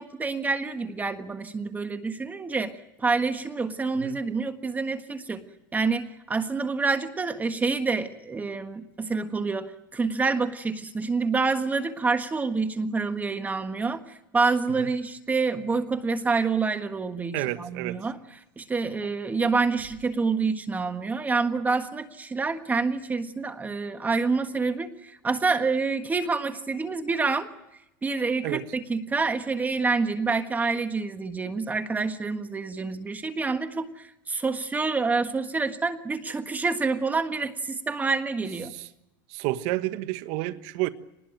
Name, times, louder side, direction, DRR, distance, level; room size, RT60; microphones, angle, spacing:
voice 1, 0.0-5.4 5.7-27.5 28.0-38.7, right 4 dB, 15° right, 8 dB, 1.5 m, -27 dB
voice 2, 17.3-18.0 28.4-28.7 38.7-38.9 39.3-40.9, right 17 dB, 60° right, 12 dB, 1.3 m, -30 dB
25.0 x 20.0 x 9.2 m, 0.87 s
supercardioid pair, 125°, 11 cm